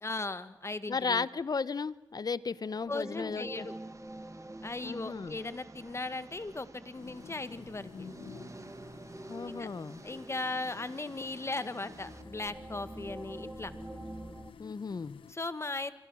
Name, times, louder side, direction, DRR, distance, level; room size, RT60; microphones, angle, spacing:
voice 1, 0.0-1.3 2.9-3.8 4.6-7.9 9.6-9.7 10.0-13.7 15.3-15.9, left 2 dB, 30° left, 12 dB, 1.8 m, -37 dB
voice 2, 0.9-3.7 4.8-5.4 9.3-10.0 14.6-15.2, left 5 dB, 50° left, 18 dB, 1.0 m, -34 dB
sound 1, 2.4-14.5, right 1 dB, 15° right, 1.6 m, -48 dB
Engine, 3.6-12.2, right 3 dB, 35° right, 2.0 m, -54 dB
sound 2, 6.9-15.3, left 7 dB, 85° left, 1.0 m, -52 dB
27.5 x 25.5 x 6.4 m, 1.0 s
cardioid pair, 60°, 9 cm